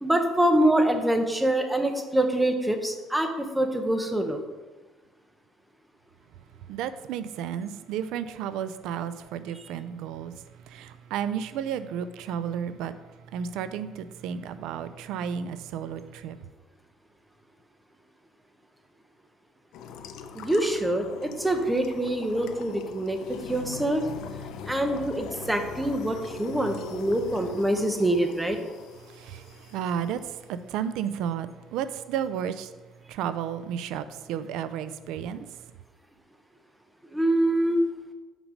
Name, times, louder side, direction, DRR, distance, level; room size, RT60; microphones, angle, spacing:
voice 1, 0.0-4.4 20.3-24.0 24.7-28.6 37.1-37.8, right 1 dB, 5° right, 5 dB, 0.8 m, -25 dB
voice 2, 6.7-16.4 29.0-32.7 33.1-35.7, right 8 dB, 80° right, 12 dB, 0.4 m, -33 dB
sound 1, 19.7-30.2, left 6 dB, 70° left, 0.6 m, -42 dB
6.0 x 5.3 x 6.4 m, 1.2 s
cardioid pair, 160°, 0 cm